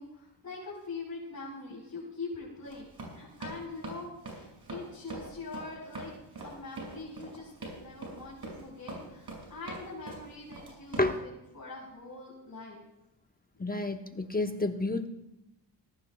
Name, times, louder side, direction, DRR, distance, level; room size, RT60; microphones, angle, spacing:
voice 1, 0.0-2.9 3.1-6.1 6.4-12.8 13.5-13.7, left 3 dB, 40° left, -4 dB, 4.7 m, -43 dB
Run, 2.6-11.2, right 2 dB, 55° right, 6.2 m, -43 dB
voice 2, 13.6-15.1, left 2 dB, 20° left, 6 dB, 0.9 m, -30 dB
19.0 x 17.5 x 2.3 m, 0.92 s
cardioid pair, 80°, 46 cm